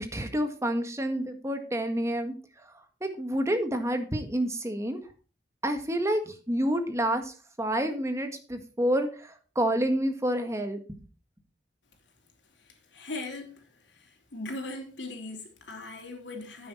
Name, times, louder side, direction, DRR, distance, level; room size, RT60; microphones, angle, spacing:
voice 1, 0.0-2.3 3.0-5.0 5.6-11.0, right 1 dB, 15° right, 1.7 m, -29 dB
voice 2, 12.9-13.5 14.3-16.7, left 2 dB, 90° left, 3.2 m, -38 dB
10.0 x 8.8 x 4.5 m
head